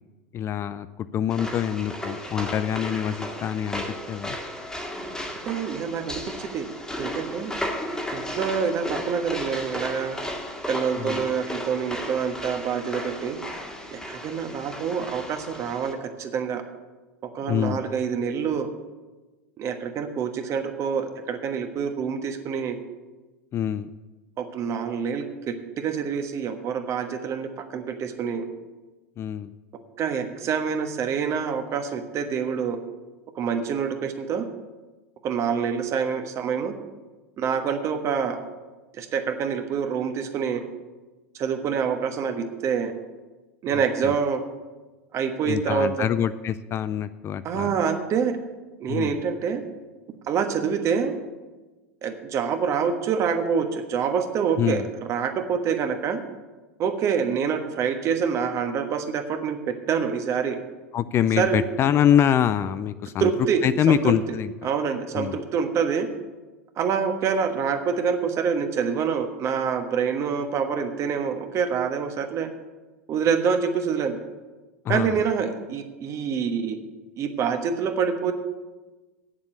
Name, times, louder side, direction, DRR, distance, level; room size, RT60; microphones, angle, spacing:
voice 1, 0.3-4.4 11.0-11.3 17.5-17.8 23.5-23.9 29.2-29.5 43.7-44.1 45.5-47.8 48.9-49.2 54.6-54.9 60.9-63.3 63.6-64.5 65.2-65.4 74.8-75.2, left 9 dB, 35° left, 14 dB, 0.4 m, -25 dB
sound 1, 1.3-15.9, equal, 10° left, 1.8 m, -34 dB
voice 2, 5.4-6.7 6.9-7.6 8.1-10.2 10.7-13.4 13.9-16.6 17.3-18.7 19.6-22.8 24.4-28.5 30.0-32.8 33.3-34.4 35.2-36.7 37.4-38.4 38.9-40.6 41.3-42.9 43.6-44.4 45.1-46.1 47.4-48.4 48.8-49.6 50.2-51.1 52.0-54.8 55.1-56.2 56.8-60.6 61.4-61.6 63.2-64.1 64.6-66.1 66.8-72.5 73.1-74.2 74.9-76.8 77.2-78.3, right 6 dB, 40° right, 7 dB, 1.3 m, -26 dB
8.7 x 7.4 x 8.3 m, 1.2 s
hypercardioid pair, 85°, 8 cm